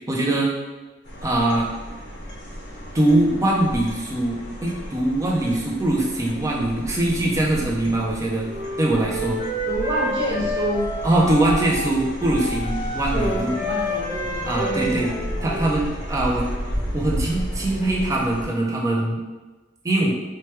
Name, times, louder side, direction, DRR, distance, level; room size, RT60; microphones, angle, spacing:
voice 1, 0.1-0.5 1.2-1.7 2.9-8.5 8.8-9.4 11.0-13.5 14.4-15.1 15.4-16.5 16.9-19.2 19.8-20.2, right 1 dB, 15° right, -2 dB, 0.4 m, -22 dB
sound 1, 1.0-18.5, equal, 70° left, 0.7 m, -33 dB
Wind instrument woodwind instrument, 8.4-11.9 12.2-15.7, equal, 40° left, 1.1 m, -30 dB
voice 2, 9.6-10.9 13.1-15.5, equal, 80° right, -6 dB, 1.0 m, -28 dB
3.0 x 2.2 x 3.1 m, 1.2 s
head